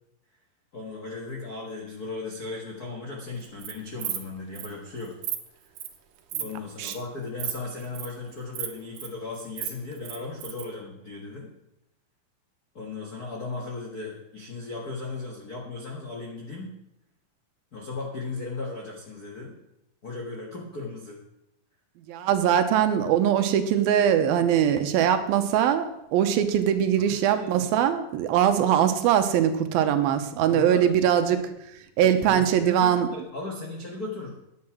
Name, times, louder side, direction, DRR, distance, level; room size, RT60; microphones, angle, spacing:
voice 1, 0.7-5.1 5.6-5.7 6.4-11.5 12.7-16.7 17.7-19.5 20.0-21.2 27.0-27.7 30.5-30.9 32.0-34.4, left 3 dB, 65° left, -1 dB, 0.9 m, -36 dB
Insect, 3.4-3.7 4.0-4.2 4.6-4.7 5.0-5.4 5.8-6.0 6.3-6.5 6.8-7.0 7.4-7.5 7.8-8.1 8.5-9.1 9.4-10.7, right 11 dB, 70° right, 2.3 m, -33 dB
voice 2, 22.1-31.4 32.0-33.1, right 9 dB, 85° right, 8 dB, 2.7 m, -22 dB
9.7 x 9.5 x 6.0 m, 0.84 s
omnidirectional pair, 4.2 m